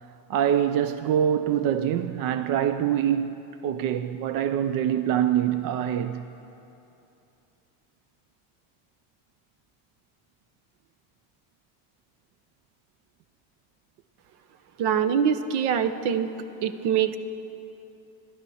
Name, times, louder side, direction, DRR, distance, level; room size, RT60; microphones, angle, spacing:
voice 1, 0.3-6.2, right 10 dB, 60° right, 0.5 m, -25 dB
voice 2, 14.8-16.3 16.6-17.2, right 8 dB, 75° right, 1.0 m, -24 dB
26.0 x 12.0 x 4.2 m
cardioid pair, 140°, 40 cm